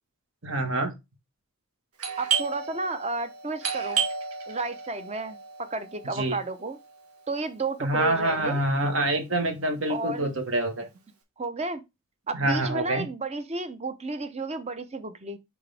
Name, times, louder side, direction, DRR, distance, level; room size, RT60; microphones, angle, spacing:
voice 1, 0.4-0.9 6.1-6.4 7.8-10.8 12.4-13.1, right 1 dB, 60° right, 1.6 m, -26 dB
Doorbell, 2.0-7.4, right 6 dB, 85° right, 1.7 m, -33 dB
voice 2, 2.2-4.0 4.5-6.8 7.3-8.6 9.9-10.4 11.4-11.8 12.3-15.4, right 3 dB, 30° right, 0.8 m, -32 dB
6.4 x 4.9 x 3.5 m
head